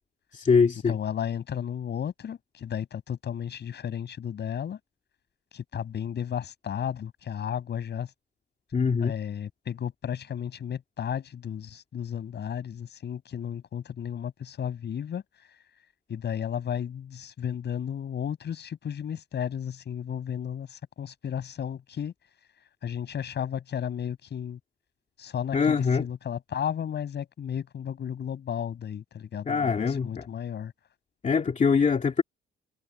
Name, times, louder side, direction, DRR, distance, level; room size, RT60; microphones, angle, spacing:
voice 1, 0.3-1.0 8.7-9.1 25.5-26.1 29.5-30.3 31.2-32.2, left 5 dB, 40° left, 2.3 m, -23 dB
voice 2, 0.9-4.8 5.5-8.1 9.0-15.2 16.1-22.1 22.8-24.6 25.2-30.7, left 8 dB, 60° left, 7.2 m, -33 dB
cardioid pair, 90°, 20 cm